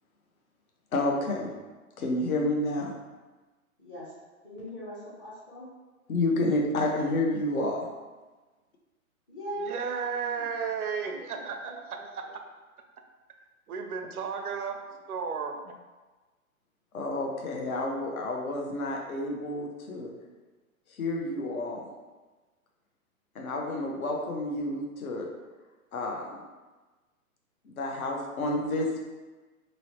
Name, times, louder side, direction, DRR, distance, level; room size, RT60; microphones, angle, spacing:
voice 1, 0.9-1.5 2.0-2.9 6.1-7.9 16.9-20.1 21.0-21.9 23.3-25.3 25.9-26.3 27.6-29.0, left 2 dB, 75° left, 0 dB, 0.7 m, -29 dB
voice 2, 3.8-4.1 4.4-5.7 9.3-10.5 11.3-11.4 12.2-12.3, right 1 dB, 15° left, -7 dB, 0.4 m, -40 dB
voice 3, 9.6-12.2 13.7-15.8, right 6 dB, 85° right, 4 dB, 0.5 m, -34 dB
2.9 x 2.0 x 2.8 m, 1.2 s
hypercardioid pair, 120°, 43 cm